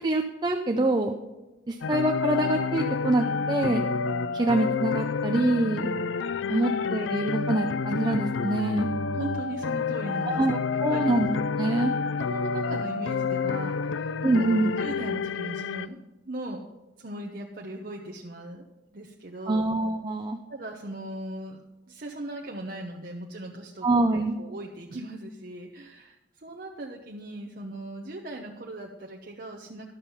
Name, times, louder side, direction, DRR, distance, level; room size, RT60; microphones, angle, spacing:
voice 1, 0.0-1.1 1.7-3.8 4.3-5.9 6.5-8.9 10.3-11.3 11.6-11.9 14.2-14.7 19.5-20.4 23.8-24.4, right 2 dB, 25° right, 3 dB, 0.6 m, -25 dB
sound 1, 1.8-15.9, left 5 dB, 80° left, 0.4 m, -29 dB
voice 2, 9.1-11.3 12.2-14.2 14.6-16.0 16.2-16.6 17.0-18.6 18.9-19.7 20.5-21.6 21.9-29.9, right 1 dB, 50° right, 0 dB, 0.9 m, -38 dB
11.5 x 7.2 x 5.5 m, 1.1 s
head